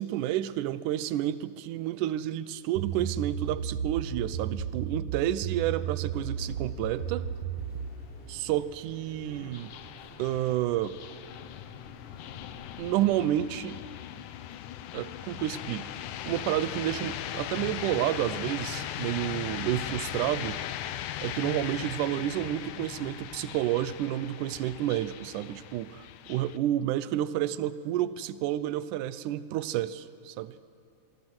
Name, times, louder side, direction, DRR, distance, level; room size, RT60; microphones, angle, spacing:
voice 1, 0.0-7.3 8.3-9.7 10.2-11.0 12.8-13.8 14.9-15.9 16.3-20.6 21.2-30.6, right 13 dB, 80° right, 15 dB, 2.2 m, -30 dB
sound 1, 2.8-8.0, right 7 dB, 60° right, 1.5 m, -34 dB
sound 2, 6.3-12.9, left 1 dB, 20° left, 4.6 m, -52 dB
sound 3, 7.6-26.6, left 11 dB, 85° left, 2.4 m, -39 dB
27.0 x 23.0 x 6.2 m, 2.6 s
omnidirectional pair, 3.6 m